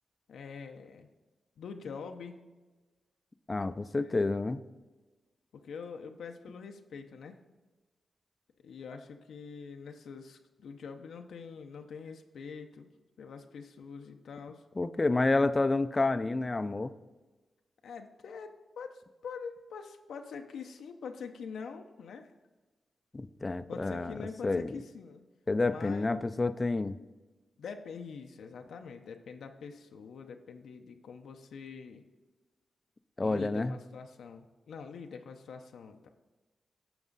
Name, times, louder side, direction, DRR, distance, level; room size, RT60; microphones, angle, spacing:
voice 1, 0.3-1.1 1.6-2.4 4.0-4.2 5.5-7.4 8.6-12.9 13.2-14.6 17.8-22.3 23.7-25.2 25.7-26.2 27.6-32.0 33.2-36.1, left 5 dB, 90° left, 5 dB, 0.7 m, -45 dB
voice 2, 3.5-4.6 14.8-16.9 23.1-24.2 24.4-24.7 25.5-27.0 33.2-33.8, left 3 dB, 30° left, 13 dB, 0.4 m, -29 dB
9.1 x 6.2 x 4.0 m, 1.2 s
cardioid pair, 85°, 0 cm